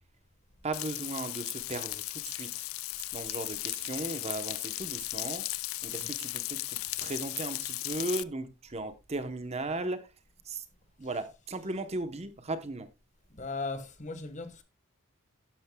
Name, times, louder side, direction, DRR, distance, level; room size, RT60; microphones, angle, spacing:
voice 1, 0.6-2.7 3.1-5.5 5.8-10.1 10.4-10.6 11.0-12.9, right 2 dB, 30° right, 0.9 m, -36 dB
Frying (food), 0.7-8.2, left 19 dB, 70° left, 0.4 m, -36 dB
voice 2, 13.3-14.6, left 3 dB, 35° left, 1.3 m, -37 dB
12.5 x 10.5 x 2.3 m
head